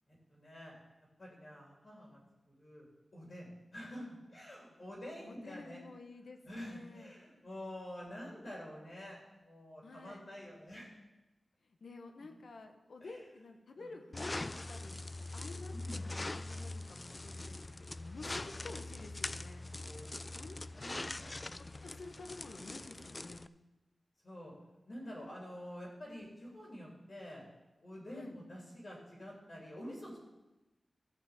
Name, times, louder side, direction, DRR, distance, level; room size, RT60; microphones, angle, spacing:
voice 1, 0.1-0.7 1.2-2.2 2.5-2.9 3.1-5.8 6.4-10.9 13.0-13.2 13.7-13.9 15.8-16.2 19.8-21.1 21.8-22.1 24.2-24.5 24.9-27.4 27.8-30.2, equal, 50° left, -3 dB, 3.0 m, -48 dB
voice 2, 5.2-7.1 9.8-10.3 11.8-15.0 15.3-19.6 20.3-20.6 21.5-23.5 28.1-28.4, left 3 dB, 85° left, 5 dB, 1.3 m, -51 dB
sound 1, 14.1-23.5, left 2 dB, 30° left, 0.3 m, -42 dB
14.5 x 5.3 x 7.3 m, 1.1 s
wide cardioid pair, 110°, 0 cm